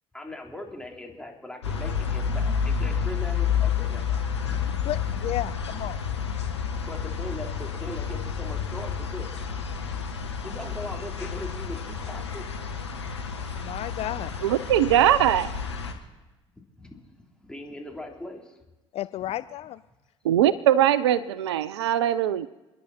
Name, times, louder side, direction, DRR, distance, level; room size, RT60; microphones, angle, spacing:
voice 1, 0.1-4.6 6.8-9.4 10.4-12.4 16.8-17.1 17.4-18.6, left 2 dB, 5° left, 3.6 m, -40 dB
russia autumn residential yard traffic, 1.6-15.9, left 6 dB, 85° left, 1.5 m, -30 dB
voice 2, 4.9-6.0 13.6-14.3 18.9-19.8, left 13 dB, 45° left, 0.5 m, -32 dB
voice 3, 14.4-15.5 20.2-22.5, right 11 dB, 75° right, 0.6 m, -21 dB
29.5 x 10.5 x 4.3 m
figure-of-eight pair, 60°, 14 cm